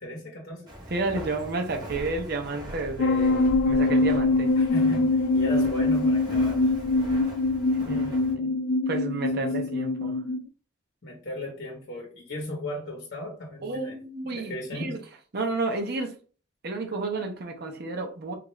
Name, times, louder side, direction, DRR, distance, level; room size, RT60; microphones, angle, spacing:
voice 1, 0.0-0.7 4.6-6.7 7.8-8.1 9.4-9.5 11.0-14.0 14.3-15.0, left 1 dB, 50° left, 0.9 m, -36 dB
Walk footsteps, 0.7-8.3, equal, 20° right, 1.0 m, -40 dB
voice 2, 0.9-4.5 7.9-10.2 13.6-15.0 15.3-16.2 16.6-18.3, right 3 dB, 50° right, 0.6 m, -31 dB
sound 1, 3.0-10.4, left 2 dB, 75° left, 0.4 m, -23 dB
2.8 x 2.4 x 3.1 m
head